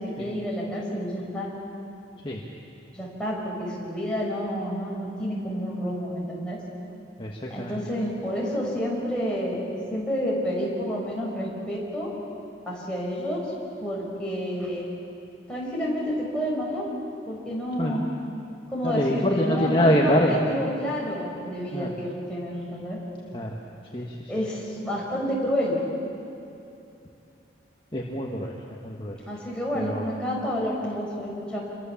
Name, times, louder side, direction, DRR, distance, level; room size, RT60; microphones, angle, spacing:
voice 1, 0.0-1.5 2.9-6.6 7.5-12.1 12.7-13.4 13.8-14.9 15.5-16.9 17.3-18.1 18.7-23.0 24.3-25.8 29.3-31.6, equal, 5° left, -5 dB, 5.6 m, -29 dB
voice 2, 7.2-7.8 17.8-18.0 18.8-20.4 21.7-21.9 23.3-23.6 23.9-24.3 27.9-28.5 28.8-29.2 29.7-30.1, equal, 25° left, -1 dB, 1.6 m, -25 dB
27.5 x 22.5 x 7.3 m, 2.7 s
head